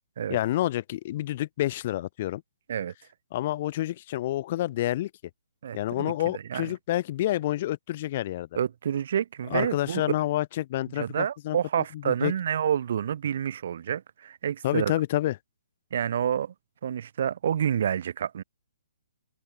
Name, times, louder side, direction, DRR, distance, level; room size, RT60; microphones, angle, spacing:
voice 1, 0.3-2.4 3.3-5.1 5.7-8.5 9.5-11.6 12.1-12.3 14.6-15.4, left 14 dB, 45° left, 0.3 m, -28 dB
voice 2, 5.6-6.7 8.5-10.0 10.9-14.9 15.9-16.5 16.8-18.4, right 9 dB, 60° right, 0.7 m, -29 dB
hypercardioid pair, 140°, 0 cm